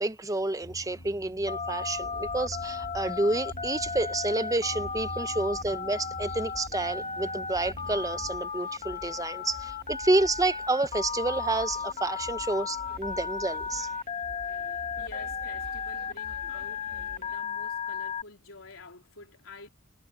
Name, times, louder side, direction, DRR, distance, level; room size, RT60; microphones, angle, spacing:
voice 1, 0.0-13.9, right 2 dB, 15° right, 0.8 m, -29 dB
sound 1, 0.6-8.3, equal, 65° left, 6.8 m, -46 dB
Telephone, 1.5-18.2, left 5 dB, 35° left, 1.6 m, -35 dB
sound 2, 1.9-17.4, right 1 dB, 45° right, 2.9 m, -49 dB
voice 2, 14.3-19.7, left 3 dB, 85° left, 3.6 m, -49 dB
head